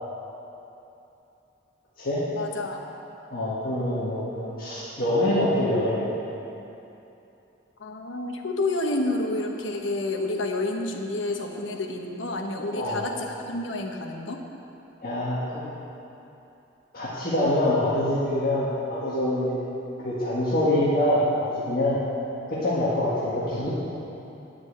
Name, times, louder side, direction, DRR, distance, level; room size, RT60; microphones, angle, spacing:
voice 1, 2.3-2.8 7.8-14.4, left 2 dB, 80° left, 2 dB, 1.1 m, -29 dB
voice 2, 3.3-6.1 12.7-13.1 15.0-15.6 16.9-19.6 20.0-22.0 22.5-23.7, left 1 dB, 50° left, -9 dB, 1.7 m, -25 dB
9.7 x 6.1 x 8.5 m, 2.9 s
head